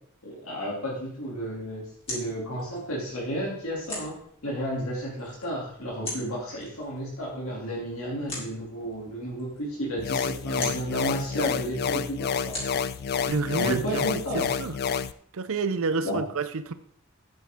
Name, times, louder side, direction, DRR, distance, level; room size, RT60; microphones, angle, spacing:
voice 1, 0.2-4.2 4.4-12.6 13.6-14.4 16.0-16.2, equal, 70° left, -4 dB, 2.7 m, -32 dB
sound 1, 1.4-14.2, left 1 dB, 30° left, 3.8 m, -43 dB
sound 2, 10.0-15.1, left 6 dB, 45° left, 0.4 m, -29 dB
voice 2, 13.3-14.1 14.3-14.8 15.3-16.7, right 4 dB, 70° right, 12 dB, 0.6 m, -29 dB
9.3 x 8.8 x 3.6 m, 0.64 s
head